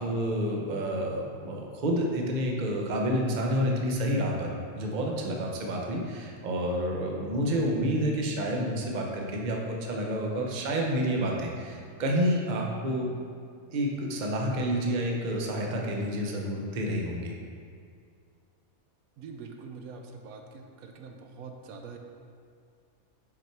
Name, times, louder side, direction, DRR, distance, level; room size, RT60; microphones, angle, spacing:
voice 1, 0.0-13.1 13.7-17.3, equal, 40° right, 0 dB, 0.8 m, -29 dB
voice 2, 19.2-22.0, right 4 dB, 80° right, 4 dB, 1.0 m, -44 dB
5.5 x 5.1 x 4.5 m, 2.2 s
omnidirectional pair, 1.5 m